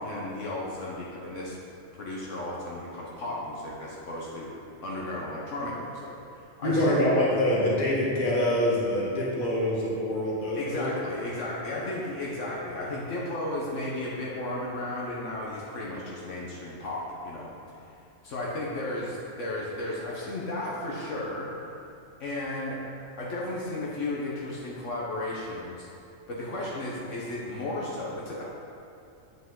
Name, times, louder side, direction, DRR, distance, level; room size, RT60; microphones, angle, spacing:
voice 1, 0.0-1.6 1.9-4.5 4.8-6.1 6.6-7.1 10.5-17.5 18.2-21.5 22.2-22.8 23.2-25.9 26.3-28.4, left 1 dB, 70° left, -5 dB, 1.3 m, -34 dB
voice 2, 6.6-10.9, left 1 dB, 40° left, -5 dB, 1.5 m, -25 dB
8.0 x 5.8 x 3.7 m, 2.7 s
omnidirectional pair, 1.3 m